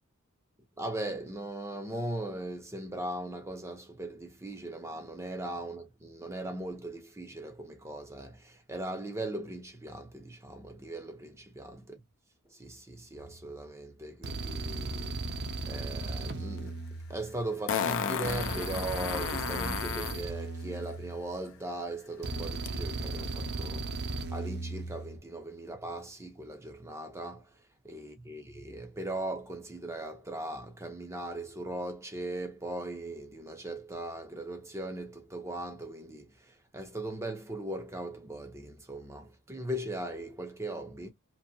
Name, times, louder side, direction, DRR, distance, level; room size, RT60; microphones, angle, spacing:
voice 1, 0.8-12.0 12.5-15.2 15.7-16.8 17.1-27.5 27.8-41.1, right 1 dB, 15° right, 0.6 m, -39 dB
sound 1, 13.2-13.5 14.2-17.5 18.3-21.5 22.2-25.2, right 3 dB, 50° right, 0.7 m, -37 dB
Fart, 16.6-16.7 17.7-20.2 22.7-22.8, left 7 dB, 60° left, 0.5 m, -32 dB
2.7 x 2.6 x 2.6 m
head